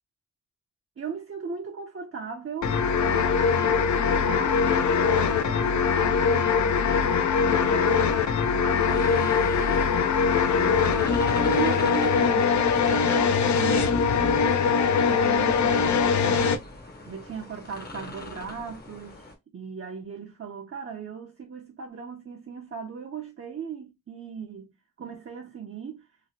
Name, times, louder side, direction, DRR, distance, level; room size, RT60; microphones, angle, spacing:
voice 1, 1.0-6.9 7.5-9.9 10.5-16.6 17.1-19.3 19.5-26.1, right 7 dB, 45° right, 0.6 m, -37 dB
sound 1, 2.6-16.6, left 6 dB, 65° left, 0.5 m, -22 dB
sound 2, 8.9-19.4, left 2 dB, 30° left, 0.7 m, -41 dB
2.9 x 2.5 x 2.7 m
wide cardioid pair, 90°, 32 cm